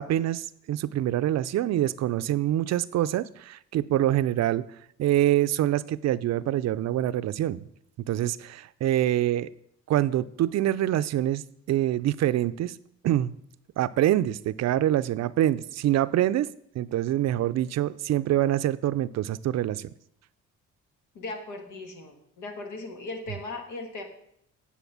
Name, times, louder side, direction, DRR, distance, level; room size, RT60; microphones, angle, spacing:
voice 1, 0.0-4.6 5.0-7.6 8.1-9.5 9.9-11.4 11.7-12.8 13.0-13.4 13.8-19.9, right 13 dB, 60° right, 15 dB, 0.5 m, -25 dB
voice 2, 21.1-24.0, left 2 dB, 90° left, 4 dB, 1.6 m, -38 dB
9.3 x 4.3 x 6.9 m, 0.72 s
cardioid pair, 90°, 30 cm